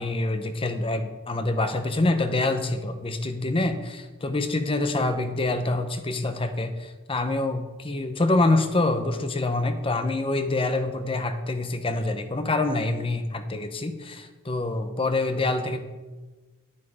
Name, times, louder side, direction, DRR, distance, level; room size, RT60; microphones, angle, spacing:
voice 1, 0.0-15.9, left 2 dB, 25° left, 8 dB, 0.8 m, -26 dB
9.4 x 8.6 x 4.9 m, 1.2 s
head